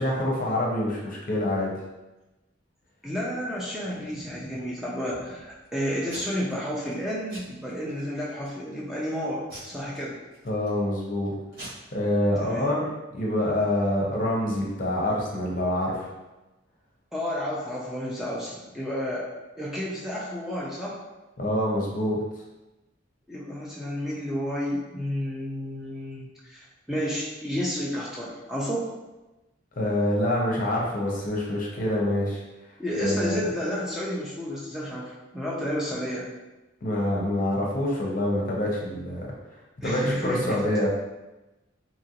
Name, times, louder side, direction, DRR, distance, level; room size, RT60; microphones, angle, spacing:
voice 1, 0.0-1.7 10.4-11.3 11.9-16.1 21.4-22.2 29.8-33.4 36.8-40.9, left 1 dB, 45° left, -3 dB, 0.6 m, -26 dB
voice 2, 3.0-10.2 12.4-12.7 17.1-19.3 19.6-21.0 23.3-28.9 32.8-36.3 39.8-40.6, equal, ahead, -7 dB, 0.4 m, -31 dB
Packing tape duct tape / Tearing, 3.3-4.7 5.2-5.7 6.1-6.5 6.8-7.0 7.3-8.0 8.5-8.8 9.5-10.8 11.2-11.3 11.5-11.7, right 1 dB, 55° right, 1.4 m, -44 dB
2.9 x 2.5 x 2.8 m, 1.0 s
head